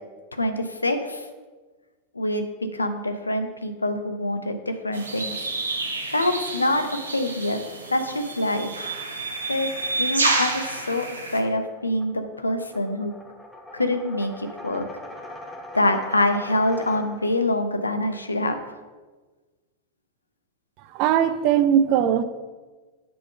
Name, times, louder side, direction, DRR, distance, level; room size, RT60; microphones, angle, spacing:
voice 1, 0.3-1.3 2.1-5.4 6.1-7.6 7.9-8.7 9.5-9.7 10.0-11.1 11.3-13.1 13.7-14.8 15.7-18.6, left 1 dB, 80° left, 0.6 m, -25 dB
sound 1, 4.9-11.4, right 2 dB, 75° right, 0.8 m, -29 dB
sound 2, 9.2-17.5, left 1 dB, ahead, 0.9 m, -43 dB
voice 2, 20.8-22.2, right 9 dB, 45° right, 0.4 m, -20 dB
6.8 x 3.6 x 5.4 m
figure-of-eight pair, 90°, 0 cm